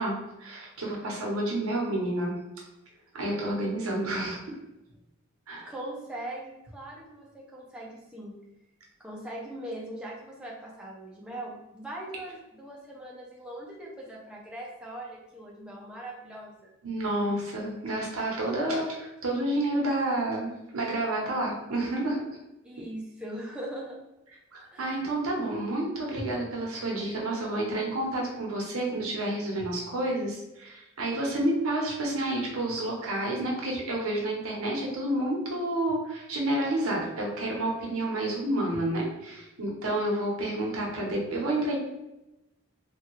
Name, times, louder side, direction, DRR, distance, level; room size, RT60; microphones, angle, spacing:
voice 1, 0.0-2.3 3.1-4.4 5.5-5.7 16.8-22.4 24.5-41.8, right 1 dB, 90° right, -2 dB, 0.9 m, -29 dB
voice 2, 5.7-8.4 9.0-16.7 22.6-24.0 24.7-25.0, right 1 dB, 5° right, -4 dB, 0.4 m, -40 dB
3.3 x 2.2 x 3.0 m, 0.94 s
head